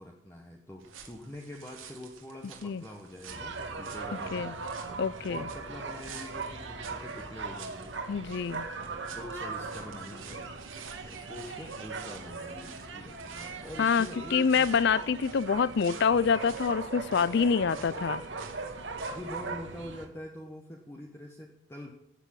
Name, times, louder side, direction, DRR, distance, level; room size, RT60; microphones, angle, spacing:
voice 1, 0.0-4.5 5.3-8.0 8.7-10.5 11.0-14.7 16.1-16.3 19.0-21.9, left 1 dB, 15° left, 1 dB, 1.2 m, -45 dB
sound 1, 0.8-19.5, right 7 dB, 80° right, 2.4 m, -51 dB
sound 2, 3.3-20.1, right 4 dB, 60° right, 1.7 m, -39 dB
voice 2, 5.0-5.5 8.1-8.7 13.8-18.2, left 6 dB, 60° left, 19 dB, 0.4 m, -26 dB
13.5 x 8.2 x 8.4 m, 0.80 s
head